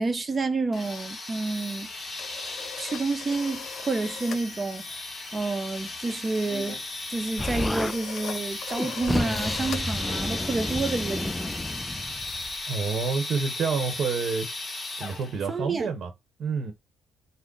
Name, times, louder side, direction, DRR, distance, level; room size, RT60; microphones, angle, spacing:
voice 1, 0.0-1.9 2.8-5.0 5.3-6.8 7.1-11.5 15.5-15.9, right 3 dB, 30° right, 0.7 m, -29 dB
sound 1, 0.7-15.5, left 2 dB, 30° left, 1.1 m, -36 dB
sound 2, 1.8-4.5 4.8-5.1 5.3-12.0, left 7 dB, 70° left, 0.5 m, -42 dB
Explosion, 7.4-8.0 8.7-12.6, left 1 dB, 10° left, 0.3 m, -31 dB
voice 2, 12.7-14.5 15.0-16.1 16.4-16.7, right 5 dB, 60° right, 0.9 m, -28 dB
3.8 x 2.0 x 3.8 m
cardioid pair, 90°, 0 cm